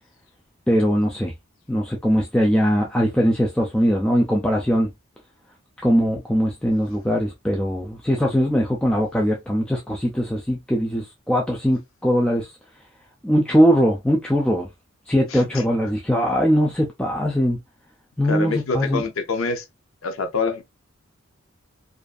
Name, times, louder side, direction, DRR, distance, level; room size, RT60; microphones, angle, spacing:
voice 1, 0.7-1.3 1.7-4.9 5.8-12.5 13.2-14.7 15.1-17.6 18.2-19.0, equal, 5° left, 0.3 m, -21 dB
voice 2, 15.3-15.6 18.2-19.7 20.0-20.6, left 3 dB, 80° left, 0.5 m, -26 dB
2.5 x 2.4 x 2.3 m
head